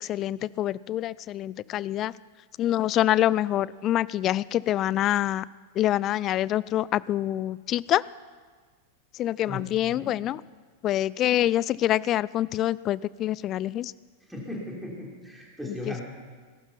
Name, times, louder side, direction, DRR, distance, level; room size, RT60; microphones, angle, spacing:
voice 1, 0.0-2.1 2.6-5.4 5.8-8.0 9.1-10.4 10.8-13.9 15.6-16.0, left 13 dB, 35° left, 21 dB, 0.3 m, -26 dB
voice 2, 9.4-10.2 14.3-16.0, left 2 dB, 5° right, -3 dB, 3.6 m, -37 dB
18.0 x 12.0 x 5.6 m, 1.5 s
figure-of-eight pair, 90°, 0 cm